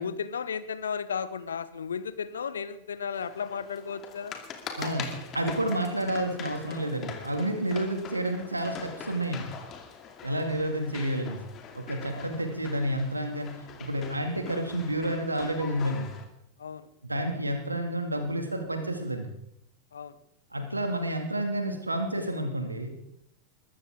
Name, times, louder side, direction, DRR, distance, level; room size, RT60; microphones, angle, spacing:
voice 1, 0.0-4.4 10.2-10.6 12.1-12.3 16.6-16.9 19.9-20.1, left 6 dB, 70° left, 14 dB, 1.0 m, -34 dB
sound 1, 3.1-16.2, left 6 dB, 30° left, 2.5 m, -43 dB
voice 2, 4.8-5.1 5.3-9.5 10.2-11.4 11.8-13.5 13.8-16.1 17.0-19.3 20.5-22.9, right 1 dB, 85° right, 5 dB, 2.5 m, -30 dB
22.0 x 14.0 x 3.8 m, 0.80 s
figure-of-eight pair, 90°, 0 cm